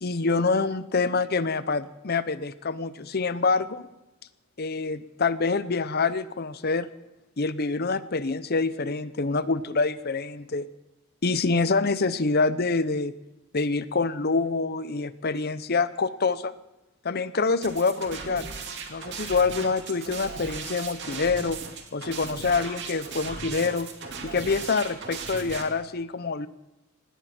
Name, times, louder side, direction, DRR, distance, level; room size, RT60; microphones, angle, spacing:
voice 1, 0.0-3.9 4.6-6.9 7.4-10.7 11.2-13.1 13.5-16.5 17.0-18.5 18.9-21.6 21.9-23.9 24.2-26.5, left 4 dB, 45° left, 14 dB, 0.7 m, -26 dB
sound 1, 17.6-25.6, right 4 dB, 55° right, 2.3 m, -37 dB
18.5 x 17.0 x 4.4 m, 0.95 s
head